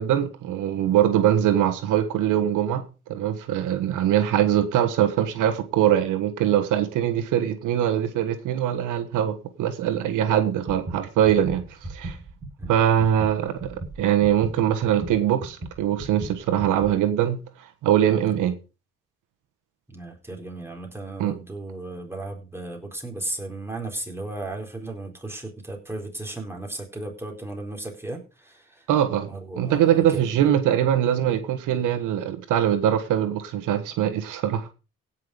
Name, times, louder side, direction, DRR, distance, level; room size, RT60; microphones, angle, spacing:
voice 1, 0.0-2.8 3.1-11.6 11.9-12.2 12.7-17.4 17.8-18.6 21.2-21.3 28.9-29.3 29.6-34.7, right 10 dB, 90° right, 1.4 m, -22 dB
sound 1, 10.7-16.9, right 2 dB, 30° right, 4.9 m, -37 dB
voice 2, 19.9-28.9 29.3-30.3, right 2 dB, 10° right, 4.2 m, -35 dB
16.5 x 5.9 x 5.0 m
cardioid pair, 90°, 30 cm